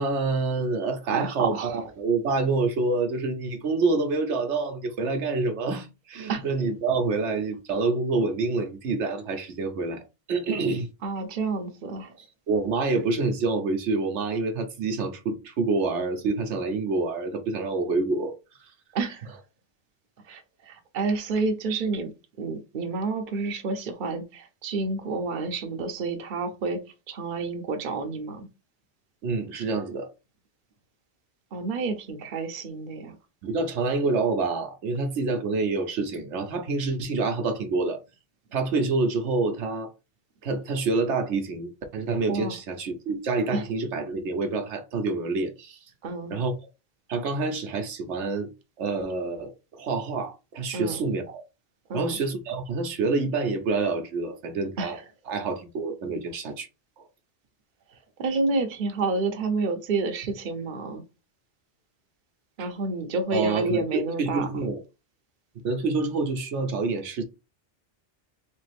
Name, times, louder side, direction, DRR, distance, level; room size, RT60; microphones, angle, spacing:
voice 1, 0.0-10.0 10.3-10.9 12.2-18.3 18.6-18.7 29.2-30.1 33.4-38.0 38.5-39.9 40.4-45.9 46.3-46.5 47.1-48.5 48.8-51.4 51.9-55.0 55.3-56.7 57.0-57.1 62.6-62.7 63.3-64.8 65.6-67.2, right 3 dB, 75° right, 1.1 m, -27 dB
voice 2, 1.1-1.8 6.3-6.5 11.0-12.1 18.9-19.3 20.2-22.1 22.4-26.8 27.1-28.5 31.5-33.1 42.3-42.5 43.5-43.6 46.0-46.4 50.7-51.0 51.9-52.2 54.8-55.0 58.2-61.0 62.6-64.5, right 3 dB, 50° right, 0.8 m, -29 dB
3.4 x 3.3 x 3.3 m
omnidirectional pair, 1.2 m